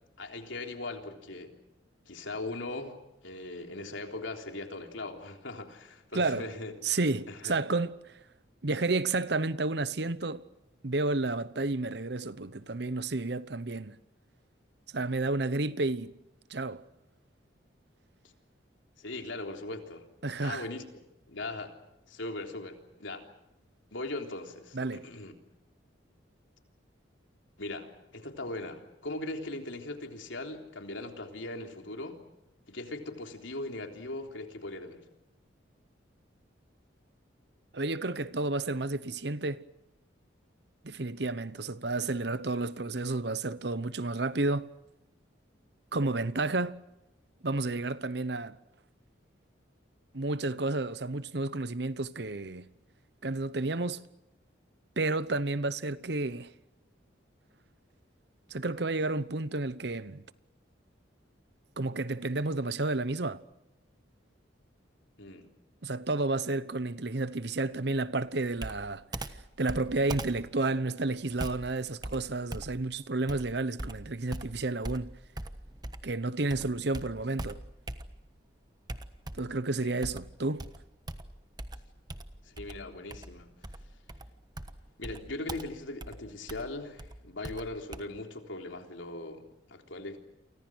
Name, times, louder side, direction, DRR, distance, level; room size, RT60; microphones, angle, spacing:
voice 1, 0.2-1.5 2.1-6.7 7.3-7.5 19.0-20.1 20.4-20.8 21.3-21.7 22.1-23.3 23.9-25.3 27.6-32.2 32.7-35.0 65.2-65.5 79.8-79.9 82.4-83.5 85.0-90.2, left 2 dB, 85° left, 3.6 m, -39 dB
voice 2, 6.1-6.5 6.8-8.2 8.6-10.4 10.8-14.0 14.9-16.1 16.5-16.8 20.2-20.7 24.7-25.1 37.7-39.6 40.8-44.7 45.9-46.8 47.4-48.6 50.1-52.7 53.2-54.0 55.0-56.5 58.5-60.2 61.8-63.4 65.8-69.0 69.6-75.1 76.0-77.6 79.4-80.7, right 2 dB, 60° right, 1.0 m, -31 dB
Computer keyboard, 68.6-76.2 76.5-78.4 78.9-79.6 80.0-88.0, right 1 dB, 20° right, 1.2 m, -42 dB
29.5 x 24.5 x 6.3 m
head